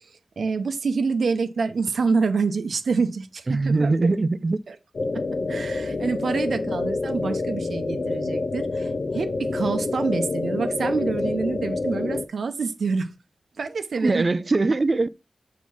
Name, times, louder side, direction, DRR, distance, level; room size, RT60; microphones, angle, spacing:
voice 1, 0.4-3.9 4.7-4.8 5.5-13.1 13.6-14.2, right 4 dB, 80° right, 0.7 m, -26 dB
voice 2, 3.5-4.6 14.0-15.1, right 3 dB, 40° right, 0.3 m, -21 dB
sound 1, 4.9-12.2, left 3 dB, 60° left, 0.5 m, -27 dB
4.7 x 4.1 x 5.7 m
wide cardioid pair, 85°, 0 cm